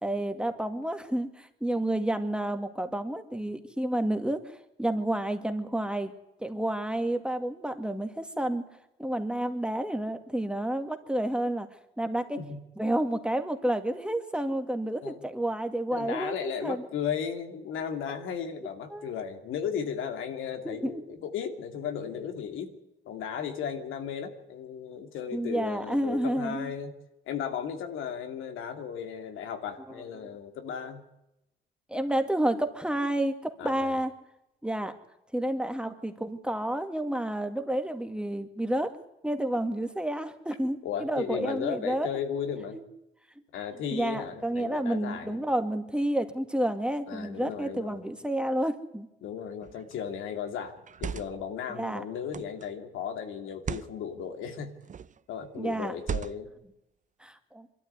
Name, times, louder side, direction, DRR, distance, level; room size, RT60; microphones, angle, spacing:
voice 1, 0.0-4.4 4.8-6.1 6.4-8.6 9.0-11.7 12.0-12.4 12.8-16.9 18.9-19.2 20.7-21.0 25.3-26.7 31.9-34.1 34.6-35.0 35.3-38.9 39.2-42.1 42.7-42.8 43.9-49.1 51.8-52.0 55.6-56.0 57.2-57.7, right 1 dB, 5° right, 7 dB, 2.2 m, -30 dB
voice 2, 15.9-22.7 23.0-26.9 27.3-31.0 33.6-34.0 40.8-42.8 43.5-45.4 47.1-48.1 49.2-50.7 51.0-54.7 55.3-56.5, left 7 dB, 85° left, 6 dB, 2.7 m, -35 dB
sound 1, 49.6-49.9 50.8-51.5 52.3-52.7 53.5-53.9 54.8-55.2 56.0-56.6, right 7 dB, 40° right, 0.7 m, -36 dB
23.5 x 13.0 x 9.6 m, 0.88 s
cardioid pair, 90°, 20 cm